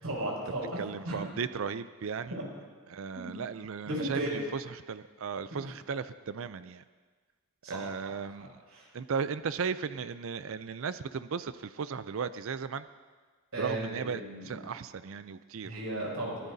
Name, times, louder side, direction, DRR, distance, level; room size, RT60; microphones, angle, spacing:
voice 1, 0.0-1.3 2.3-2.4 3.1-3.4 3.9-4.4 5.6-5.7 7.6-8.1 8.4-8.9 13.5-14.6 15.6-16.5, right 1 dB, 85° right, -3 dB, 6.3 m, -36 dB
voice 2, 0.8-2.3 2.9-4.4 4.9-6.8 7.7-8.5 8.9-12.9 13.6-15.8, right 6 dB, 65° right, 13 dB, 0.4 m, -36 dB
23.5 x 18.0 x 2.7 m, 1.4 s
head